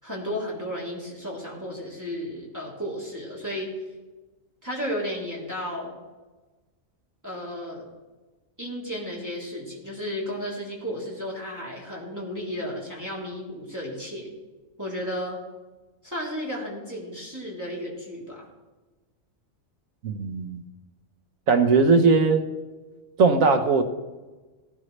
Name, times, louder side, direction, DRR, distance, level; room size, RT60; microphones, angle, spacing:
voice 1, 0.0-3.7 4.6-5.9 7.2-7.9 8.6-14.3 14.8-15.4 16.0-18.5, equal, 15° right, -5 dB, 3.3 m, -33 dB
voice 2, 20.0-20.6 21.5-22.4 23.2-23.8, right 4 dB, 80° right, 7 dB, 1.5 m, -19 dB
17.5 x 12.5 x 3.3 m, 1.2 s
omnidirectional pair, 1.4 m